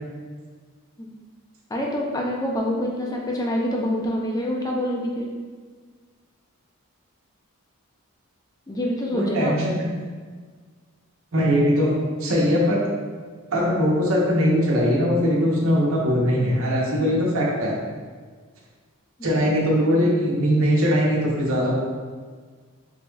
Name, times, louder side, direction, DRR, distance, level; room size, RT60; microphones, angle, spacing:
voice 1, 1.7-5.3 8.7-9.6, equal, 15° left, -1 dB, 0.4 m, -26 dB
voice 2, 9.1-9.8 11.3-12.8 13.5-17.7 19.2-21.7, equal, 65° right, -3 dB, 0.7 m, -21 dB
4.0 x 3.1 x 2.3 m, 1.5 s
head